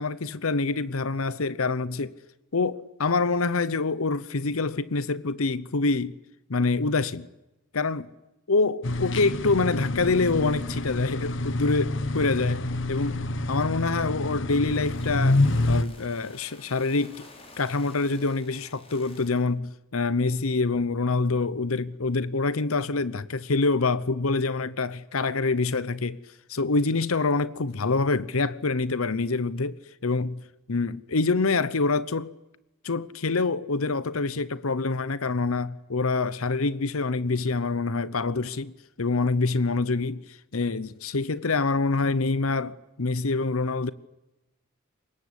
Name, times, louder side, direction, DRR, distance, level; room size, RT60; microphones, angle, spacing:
voice 1, 0.0-2.1 2.5-6.2 6.5-7.3 7.7-8.1 8.5-15.4 15.7-17.2 17.6-26.2 26.5-30.4 30.7-32.3 32.8-43.9, left 3 dB, 90° left, 0.9 m, -26 dB
sound 1, 8.8-15.8, left 2 dB, 60° left, 1.3 m, -27 dB
sound 2, 14.3-19.4, left 2 dB, 30° left, 5.2 m, -51 dB
24.5 x 21.0 x 9.9 m
head